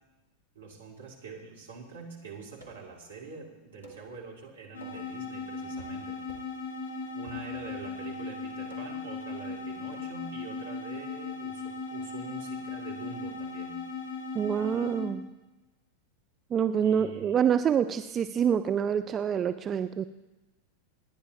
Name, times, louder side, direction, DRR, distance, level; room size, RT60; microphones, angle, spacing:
voice 1, 0.5-6.2 6.9-13.8 16.8-17.4, right 5 dB, 65° right, -1 dB, 2.8 m, -45 dB
sound 1, 2.6-3.0 3.8-4.1 4.8-5.1 5.8-6.0 6.3-6.6 7.3-7.8 8.7-9.1 9.9-10.2, right 1 dB, 90° right, 2.8 m, -50 dB
sound 2, 4.7-15.1, left 4 dB, 55° left, 4.2 m, -38 dB
voice 2, 14.4-15.2 16.5-20.0, right 8 dB, 25° right, 11 dB, 0.4 m, -26 dB
28.0 x 10.0 x 3.0 m, 1.1 s
figure-of-eight pair, 90°, 0 cm